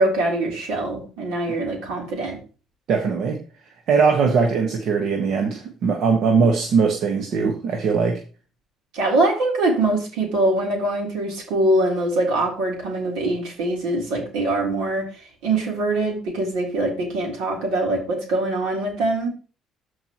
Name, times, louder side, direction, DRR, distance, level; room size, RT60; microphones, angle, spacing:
voice 1, 0.0-2.4 8.9-15.0 15.4-19.3, right 2 dB, 85° right, 3.4 m, -23 dB
voice 2, 2.9-3.4 3.9-8.2, right 5 dB, 65° right, 1.4 m, -20 dB
13.5 x 4.7 x 3.0 m
supercardioid pair, 85°, 0 cm